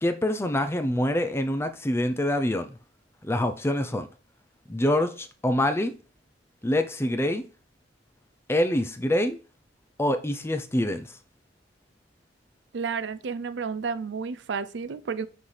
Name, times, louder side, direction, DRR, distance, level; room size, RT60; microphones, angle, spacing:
voice 1, 0.0-2.7 3.2-4.1 4.7-5.9 6.6-7.4 8.5-9.4 10.0-11.1, left 1 dB, 15° left, 0.5 m, -25 dB
voice 2, 12.7-15.3, right 5 dB, 65° right, 0.5 m, -31 dB
6.0 x 5.6 x 3.3 m
head